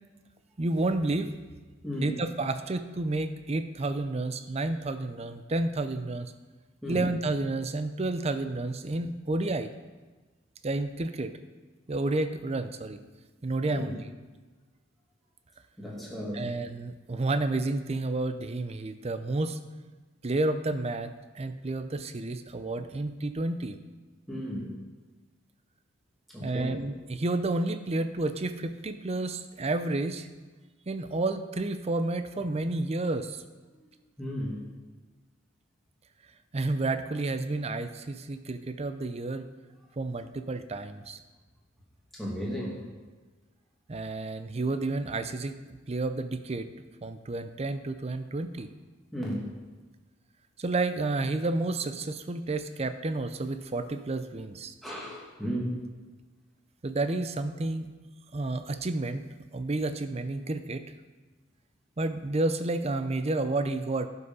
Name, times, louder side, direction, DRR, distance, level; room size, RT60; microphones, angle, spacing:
voice 1, 0.6-1.4 2.0-6.3 6.9-9.7 10.6-11.3 11.9-13.0 13.4-14.0 16.3-19.6 20.2-23.8 26.4-30.3 30.9-33.4 36.5-39.5 40.0-41.2 43.9-48.7 50.6-54.7 56.8-57.9 58.3-59.3 59.5-60.8 62.0-64.1, right 2 dB, 35° right, 10 dB, 0.5 m, -30 dB
voice 2, 1.8-2.1 6.8-7.0 13.7-13.9 15.8-16.5 24.3-24.7 26.3-26.8 34.2-34.6 42.1-42.8 49.1-49.5 54.8-55.8, equal, ahead, -5 dB, 2.2 m, -34 dB
11.5 x 5.6 x 5.4 m, 1.3 s
head